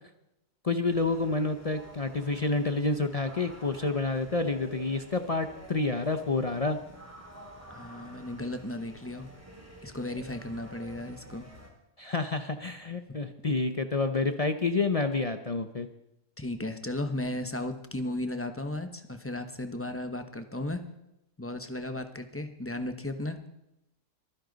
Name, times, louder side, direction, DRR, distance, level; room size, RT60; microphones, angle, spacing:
voice 1, 0.6-6.8 12.0-15.9, left 3 dB, 50° left, 8 dB, 0.4 m, -29 dB
sound 1, 0.8-11.7, equal, 10° right, 2.7 m, -50 dB
voice 2, 7.7-9.3 9.8-11.5 13.2-13.3 16.4-20.8 21.4-23.4, left 1 dB, 10° left, 7 dB, 0.7 m, -35 dB
23.5 x 10.0 x 4.0 m, 0.86 s
omnidirectional pair, 1.7 m